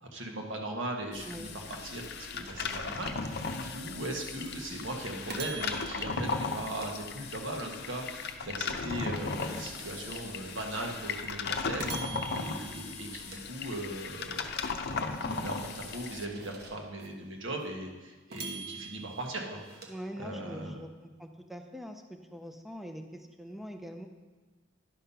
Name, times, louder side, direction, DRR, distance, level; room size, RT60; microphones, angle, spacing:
voice 1, 0.0-2.0 2.3-3.5 3.7-14.4 14.9-19.9 20.2-20.8, right 1 dB, 90° right, 1 dB, 1.5 m, -39 dB
sound 1, 1.1-16.3, left 4 dB, 60° left, 0.6 m, -37 dB
sound 2, 1.6-4.1 4.6-4.7 5.3-7.7 8.1-10.6 11.1-11.2 11.8-14.2 14.6-17.1 17.6-17.7 18.3-20.6, right 4 dB, 55° right, 1.3 m, -47 dB
voice 2, 19.9-24.1, equal, ahead, 5 dB, 0.5 m, -43 dB
11.0 x 5.6 x 5.6 m, 1.3 s
head